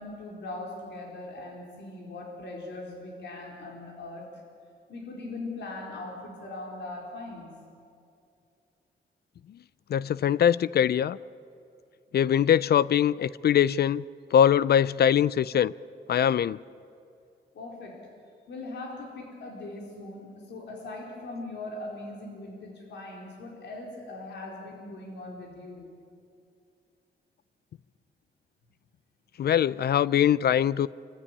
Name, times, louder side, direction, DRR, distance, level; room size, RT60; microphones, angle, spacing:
voice 1, 0.0-4.4 4.9-7.5 17.5-18.1 18.5-25.9, left 2 dB, 85° left, 0 dB, 4.5 m, -40 dB
voice 2, 9.9-11.2 12.1-14.0 14.3-15.7 16.1-16.6 29.4-30.9, left 9 dB, 65° left, 19 dB, 0.5 m, -22 dB
26.0 x 15.0 x 9.9 m, 2.4 s
cardioid pair, 90°, 18 cm